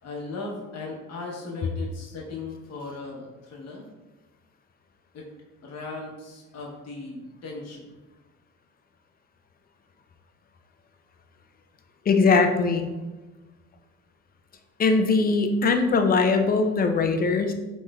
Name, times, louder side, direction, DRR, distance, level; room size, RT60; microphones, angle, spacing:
voice 1, 0.0-3.9 5.1-5.3 5.6-7.9, left 3 dB, 60° left, -2 dB, 0.9 m, -37 dB
voice 2, 12.1-12.9 14.8-17.5, left 4 dB, 30° left, 6 dB, 0.4 m, -21 dB
3.1 x 3.0 x 2.3 m, 1.2 s
cardioid pair, 90°, 30 cm